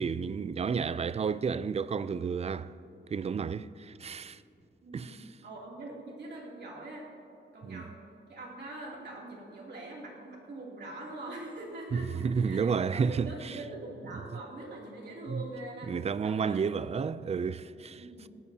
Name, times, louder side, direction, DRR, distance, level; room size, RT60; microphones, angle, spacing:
voice 1, 0.0-2.7 3.1-4.4 4.9-5.2 7.6-7.8 11.9-13.6 15.3-15.4 15.9-18.0, right 6 dB, 35° right, 0.3 m, -31 dB
voice 2, 4.8-7.1 7.5-8.0 8.3-15.9 16.2-16.7 18.0-18.5, right 2 dB, 65° right, 2.8 m, -43 dB
18.5 x 17.5 x 2.8 m
wide cardioid pair, 125°, 19 cm